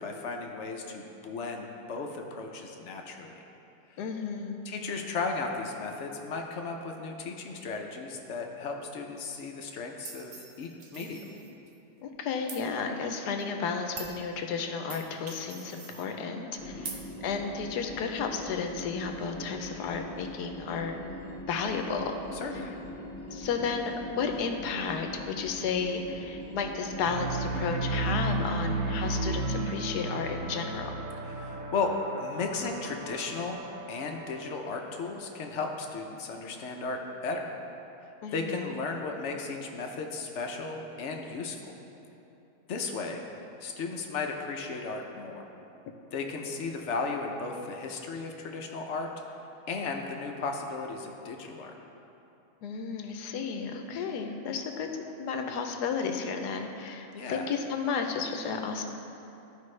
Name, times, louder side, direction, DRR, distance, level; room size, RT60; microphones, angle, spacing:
voice 1, 0.0-3.3 4.6-11.3 16.6-17.0 22.3-22.7 31.4-31.9 32.2-33.6 33.9-37.5 38.3-41.7 42.7-43.2 43.6-45.5 46.1-49.1 49.7-51.7 57.1-57.5, left 4 dB, 60° left, 2 dB, 0.8 m, -35 dB
voice 2, 4.0-4.6 12.0-21.0 21.5-22.2 23.3-31.0 38.2-38.7 52.6-54.9 55.2-58.8, left 5 dB, 85° left, 4 dB, 1.2 m, -33 dB
sound 1, 10.0-11.7 12.5-12.6 13.4-13.5 14.0-14.2 14.9-16.1 16.8-17.0, right 4 dB, 80° right, 0.4 m, -43 dB
sound 2, 16.6-28.2, equal, 10° left, 1.3 m, -42 dB
sound 3, 27.0-35.3, right 2 dB, 65° right, 0.8 m, -34 dB
13.5 x 5.0 x 3.2 m, 2.9 s
omnidirectional pair, 1.7 m